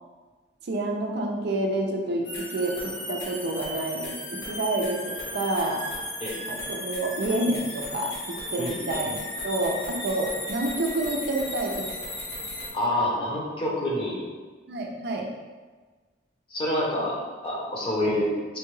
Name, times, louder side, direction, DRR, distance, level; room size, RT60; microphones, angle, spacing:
voice 1, 0.6-5.8 6.5-11.9 14.7-15.3, right 2 dB, 60° right, 1 dB, 0.5 m, -28 dB
sound 1, 2.2-12.7, left 1 dB, 75° left, 1.3 m, -35 dB
voice 2, 12.7-14.2 16.5-18.6, left 1 dB, 30° left, -4 dB, 0.8 m, -27 dB
4.5 x 2.2 x 3.1 m, 1.4 s
head